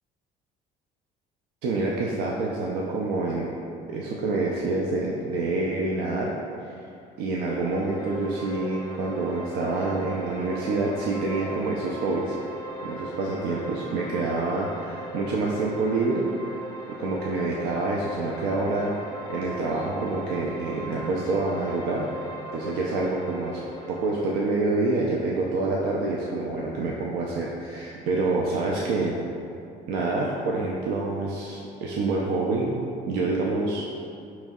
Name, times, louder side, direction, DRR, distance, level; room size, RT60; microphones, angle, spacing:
voice 1, 1.6-3.5 3.9-6.4 6.6-6.7 7.2-12.4 12.8-16.3 17.0-18.9 19.3-22.1 22.5-23.6 23.9-29.2 29.9-33.8, right 3 dB, 90° right, -2 dB, 0.4 m, -27 dB
sound 1, 7.4-24.4, right 1 dB, 15° left, 0.6 m, -38 dB
4.4 x 3.0 x 3.5 m, 2.6 s
cardioid pair, 110°, 17 cm